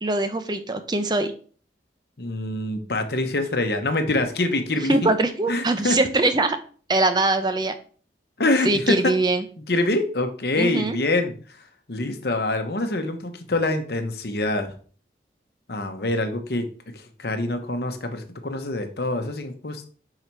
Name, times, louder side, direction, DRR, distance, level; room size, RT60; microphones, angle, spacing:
voice 1, 0.0-1.3 4.9-6.6 6.9-7.7 8.6-9.4 10.6-11.0, right 2 dB, 25° right, 9 dB, 0.5 m, -22 dB
voice 2, 2.2-5.0 5.5-6.0 8.4-9.1 9.7-11.3 11.9-14.7 15.7-16.6 17.2-19.9, left 2 dB, 65° left, 6 dB, 0.9 m, -25 dB
5.5 x 4.9 x 4.6 m, 0.42 s
head